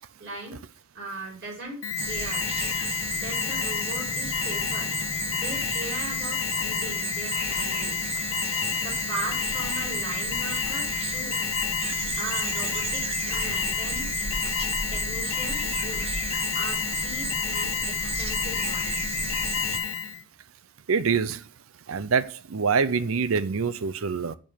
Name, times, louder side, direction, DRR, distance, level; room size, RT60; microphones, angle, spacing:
voice 1, 0.2-0.6 0.9-1.8 2.0-2.5 3.1-5.0 5.3-8.4 8.8-11.4 12.2-14.2 14.9-16.2 16.5-19.0, right 2 dB, 55° right, 4.6 m, -38 dB
Alarm, 1.8-20.2, left 8 dB, 80° left, 1.3 m, -30 dB
sound 1, 2.0-19.8, right 3 dB, 30° right, 1.6 m, -33 dB
voice 2, 20.9-21.4 21.9-24.4, right 5 dB, 75° right, 0.6 m, -25 dB
9.3 x 5.2 x 5.6 m
head